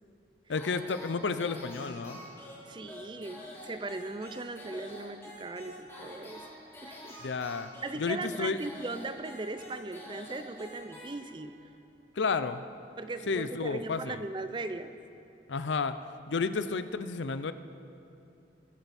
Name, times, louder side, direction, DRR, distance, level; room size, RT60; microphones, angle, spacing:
voice 1, 0.5-2.2 7.2-7.7 8.0-8.6 12.2-12.6 13.3-14.2 15.5-15.9 16.3-17.5, left 4 dB, 90° left, 11 dB, 0.6 m, -31 dB
sound 1, 0.5-11.6, equal, 15° left, 2.5 m, -48 dB
voice 2, 2.6-6.4 6.8-7.2 7.8-11.5 13.0-15.0, right 2 dB, 25° right, 10 dB, 0.5 m, -38 dB
21.5 x 8.0 x 4.2 m, 2.9 s
head